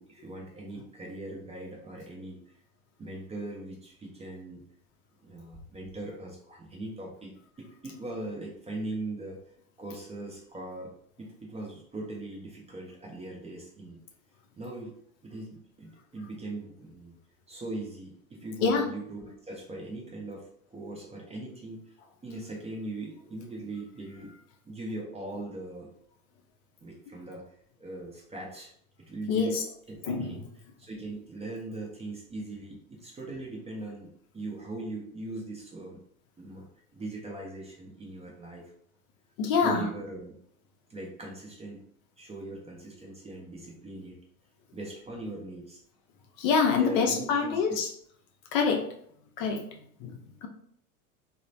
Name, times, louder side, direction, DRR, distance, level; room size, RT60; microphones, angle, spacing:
voice 1, 0.0-2.4 3.0-4.6 5.2-7.3 7.6-9.4 9.8-10.9 11.2-14.0 14.6-14.9 15.2-17.2 17.5-21.8 22.2-24.4 24.6-25.9 26.8-27.4 27.8-28.7 29.0-29.6 29.9-30.5 30.8-36.0 36.4-36.7 36.9-38.7 39.5-40.3 40.9-41.8 42.2-44.2 44.7-45.8 46.7-47.8, right 2 dB, 15° right, -2 dB, 0.5 m, -40 dB
voice 2, 29.3-29.6 30.1-30.3 39.4-39.9 46.4-47.9 48.5-48.9 49.4-50.5, left 5 dB, 45° left, 2 dB, 0.5 m, -26 dB
3.0 x 2.0 x 2.5 m, 0.66 s
hypercardioid pair, 85°, 43 cm